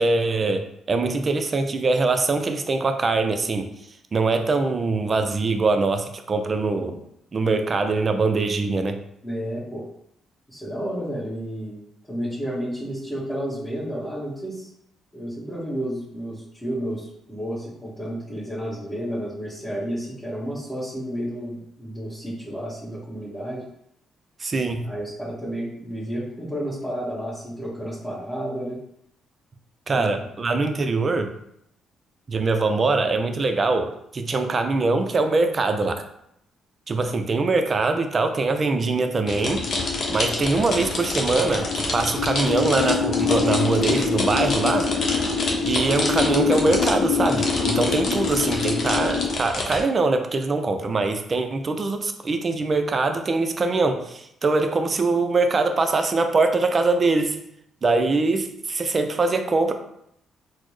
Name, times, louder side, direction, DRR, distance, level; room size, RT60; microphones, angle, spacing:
voice 1, 0.0-3.7 4.1-7.0 7.3-9.0 24.4-24.8 29.9-31.3 32.3-36.0 36.9-39.6 40.1-44.9 45.6-57.4 57.8-59.7, right 3 dB, 35° right, 6 dB, 0.4 m, -23 dB
voice 2, 9.2-9.8 10.5-14.7 15.1-23.6 24.8-28.8 29.9-30.1 47.9-48.2, equal, 10° left, -11 dB, 1.3 m, -31 dB
sound 1, 38.9-49.4, left 5 dB, 80° left, 0.4 m, -26 dB
sound 2, 39.3-49.8, left 2 dB, 55° left, 0.7 m, -28 dB
4.1 x 2.0 x 3.1 m, 0.75 s
cardioid pair, 90°, 0 cm